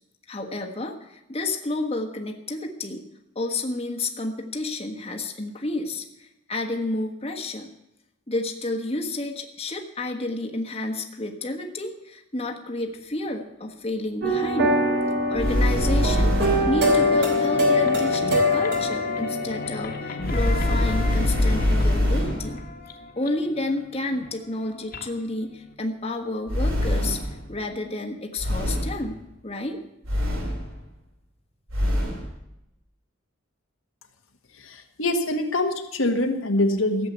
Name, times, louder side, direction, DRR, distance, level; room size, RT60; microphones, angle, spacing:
voice 1, 0.3-3.0 3.3-7.7 8.3-14.8 15.3-22.6 23.2-29.2 29.4-29.8, left 2 dB, 30° left, 2 dB, 1.5 m, -30 dB
sound 1, 14.2-20.2, left 1 dB, 55° right, 3.2 m, -23 dB
sound 2, 15.3-16.9 20.2-22.5 26.5-27.4 28.4-29.0 30.0-30.7 31.7-32.2, left 1 dB, 80° right, 3.7 m, -23 dB
sound 3, 16.8-25.7, left 3 dB, 45° left, 1.7 m, -35 dB
voice 2, 34.6-37.1, left 1 dB, 75° left, 4 dB, 1.6 m, -24 dB
15.0 x 7.7 x 9.4 m, 0.86 s
head